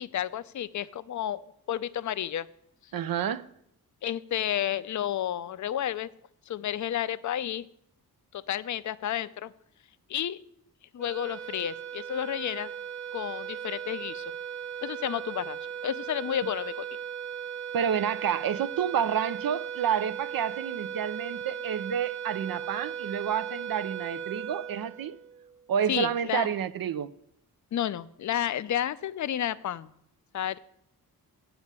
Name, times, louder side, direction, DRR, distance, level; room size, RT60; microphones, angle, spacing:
voice 1, 0.0-2.5 4.0-6.1 6.5-7.7 8.3-9.5 10.1-10.4 10.9-12.7 13.1-14.2 14.8-16.9 25.9-26.5 27.7-29.9 30.3-30.6, left 11 dB, 50° left, 0.5 m, -31 dB
voice 2, 2.9-3.5 17.7-25.2 25.7-27.1, right 8 dB, 65° right, 0.6 m, -29 dB
sound 1, 11.0-25.6, right 8 dB, 45° right, 1.0 m, -37 dB
7.3 x 6.9 x 8.1 m
cardioid pair, 80°, 38 cm